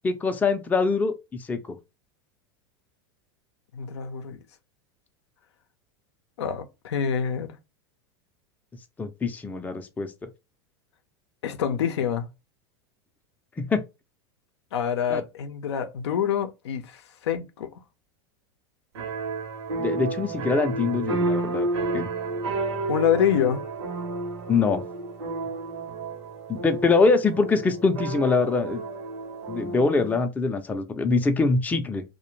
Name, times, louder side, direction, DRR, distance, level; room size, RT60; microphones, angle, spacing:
voice 1, 0.0-1.8 9.0-10.1 13.6-13.8 15.1-15.2 19.8-21.7 21.9-22.1 24.5-24.8 26.5-28.8 29.5-32.0, left 4 dB, 10° left, 0.4 m, -24 dB
voice 2, 3.7-4.4 6.4-7.6 11.4-12.3 14.7-17.7 22.9-23.6, left 8 dB, 80° left, 0.5 m, -26 dB
sound 1, 18.9-30.2, right 3 dB, 80° right, 0.8 m, -31 dB
2.4 x 2.1 x 3.0 m
hypercardioid pair, 105°, 14 cm